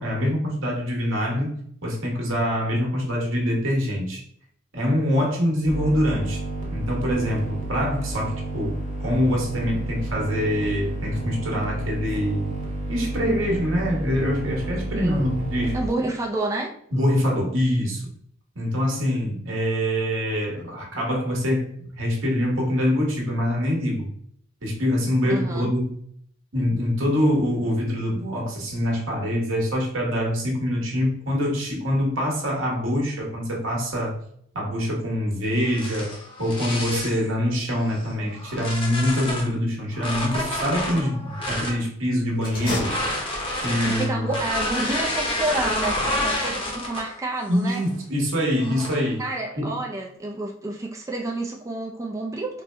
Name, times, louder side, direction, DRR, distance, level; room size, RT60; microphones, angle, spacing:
voice 1, 0.0-4.2 4.7-6.4 6.7-12.5 12.9-15.8 16.9-18.1 18.5-21.7 22.0-24.1 24.6-25.9 26.5-34.2 34.5-42.9 43.6-44.3 47.5-49.3 49.6-49.7, equal, 75° right, -2 dB, 1.3 m, -24 dB
sound 1, 5.7-15.9, right 1 dB, 40° right, 0.9 m, -31 dB
voice 2, 14.9-15.3 15.7-16.8 25.3-25.7 43.8-47.8 49.2-52.6, right 2 dB, 15° right, 0 dB, 0.3 m, -29 dB
sound 2, 35.6-37.3 37.9-39.5 39.9-41.8 42.7-47.2 47.6-47.9 48.6-49.1, left 1 dB, 25° left, 1.0 m, -29 dB
sound 3, 42.4-43.7, left 2 dB, 45° left, 1.4 m, -32 dB
4.4 x 2.1 x 3.2 m, 0.65 s
head